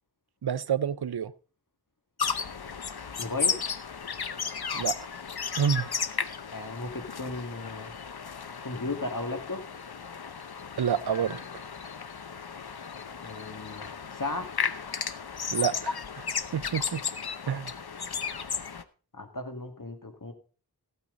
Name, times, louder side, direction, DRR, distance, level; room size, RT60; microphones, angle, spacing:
voice 1, 0.4-1.3 4.7-5.0 5.6-5.9 10.8-11.4 15.5-16.3 16.5-17.0 17.5-17.7, right 8 dB, 80° right, 0.6 m, -28 dB
sound 1, 2.2-18.8, left 6 dB, 75° left, 0.8 m, -34 dB
voice 2, 3.2-3.6 6.5-7.9 8.6-9.7 13.2-14.5 14.8-14.9 17.5-17.6 19.1-20.3, left 2 dB, 55° left, 2.2 m, -35 dB
14.5 x 9.0 x 3.9 m
wide cardioid pair, 60°, 38 cm